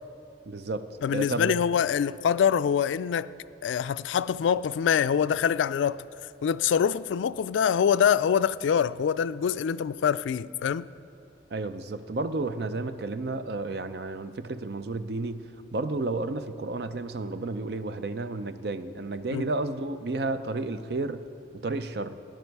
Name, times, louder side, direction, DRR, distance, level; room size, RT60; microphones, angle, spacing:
voice 1, 0.5-1.6 11.5-15.4 15.7-21.2 21.5-22.2, right 2 dB, 60° right, 0.5 m, -32 dB
voice 2, 1.0-3.3 3.6-6.0 6.4-10.9 19.3-19.4, left 8 dB, 85° left, 0.3 m, -25 dB
18.0 x 10.5 x 4.6 m
head